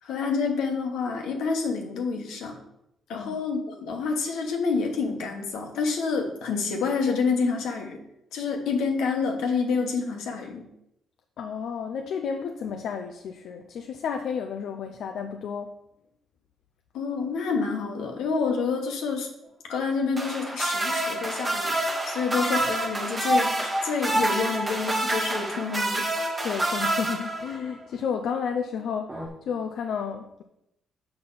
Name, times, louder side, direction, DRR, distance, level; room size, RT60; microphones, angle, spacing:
voice 1, 0.0-2.6 3.1-8.0 8.3-10.7 16.9-19.3 19.7-21.7 22.1-26.2, left 5 dB, 85° left, 2 dB, 1.3 m, -28 dB
voice 2, 3.1-3.4 11.4-15.8 26.4-30.4, left 6 dB, 70° left, 5 dB, 0.5 m, -32 dB
sound 1, 20.2-27.7 29.1-29.3, right 1 dB, 25° right, 1.3 m, -27 dB
6.7 x 5.6 x 4.0 m, 0.82 s
cardioid pair, 90°, 0 cm